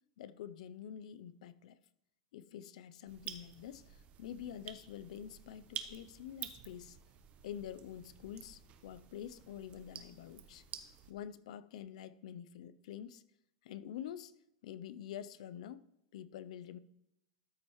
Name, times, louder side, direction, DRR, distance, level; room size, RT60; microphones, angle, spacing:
voice 1, 0.2-1.8 2.3-7.0 7.4-10.6 11.1-13.2 13.6-14.3 14.6-15.8 16.1-16.8, left 10 dB, 75° left, 15 dB, 0.5 m, -47 dB
sound 1, 3.1-11.1, right 9 dB, 35° right, 0.8 m, -50 dB
13.0 x 6.2 x 3.1 m, 0.82 s
supercardioid pair, 125°, 4 cm